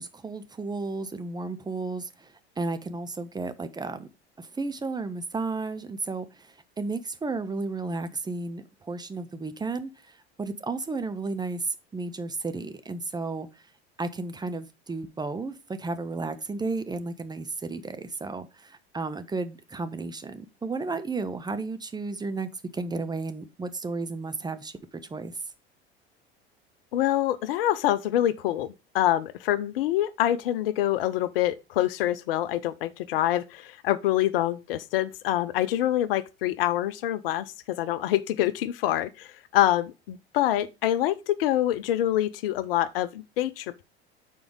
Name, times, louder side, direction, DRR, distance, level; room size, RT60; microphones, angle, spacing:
voice 1, 0.0-4.1 4.4-13.6 14.0-25.4, right 3 dB, 15° right, 0.7 m, -33 dB
voice 2, 26.9-37.4 37.8-39.3 39.5-43.8, left 13 dB, 60° left, 0.7 m, -26 dB
7.0 x 4.6 x 5.1 m
figure-of-eight pair, 75°, 32 cm